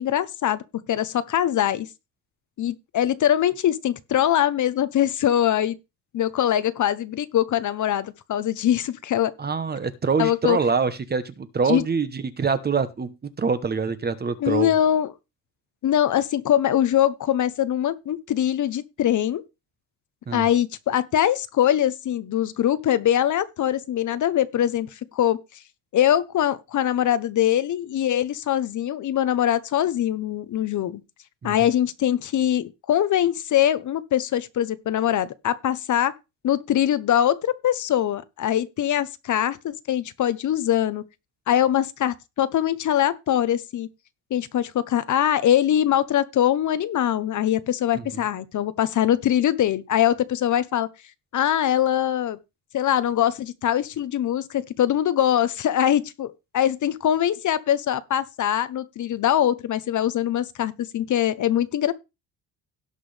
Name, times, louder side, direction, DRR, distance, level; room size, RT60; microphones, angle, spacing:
voice 1, 0.0-1.9 2.6-5.8 6.1-9.3 10.2-10.6 11.7-11.8 14.4-15.1 15.8-19.4 20.3-25.4 25.9-31.0 31.4-36.1 36.4-41.0 41.5-43.9 44.3-50.9 51.3-52.4 52.7-61.9, left 11 dB, 45° left, 0.9 m, -22 dB
voice 2, 9.4-14.7 20.3-20.4 31.4-31.5, right 5 dB, 25° right, 1.0 m, -25 dB
17.5 x 6.1 x 3.3 m
cardioid pair, 135°, 41 cm